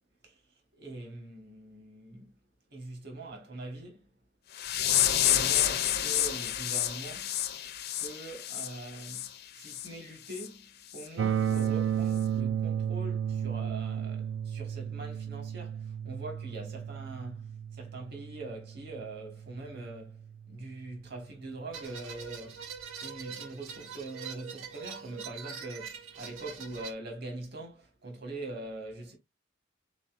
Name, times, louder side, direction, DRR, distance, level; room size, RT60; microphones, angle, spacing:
voice 1, 0.8-2.3 2.7-4.0 5.2-7.4 8.0-22.7 23.0-29.2, right 2 dB, 55° right, 1.5 m, -43 dB
sound 1, 4.5-9.3 9.6-9.9 10.3-10.5 10.9-11.1 11.6-11.7, left 11 dB, 50° left, 0.5 m, -29 dB
sound 2, 11.2-21.1, right 9 dB, 70° right, 0.4 m, -34 dB
sound 3, 21.7-26.9, right 6 dB, 85° right, 0.9 m, -43 dB
4.0 x 3.9 x 2.5 m
head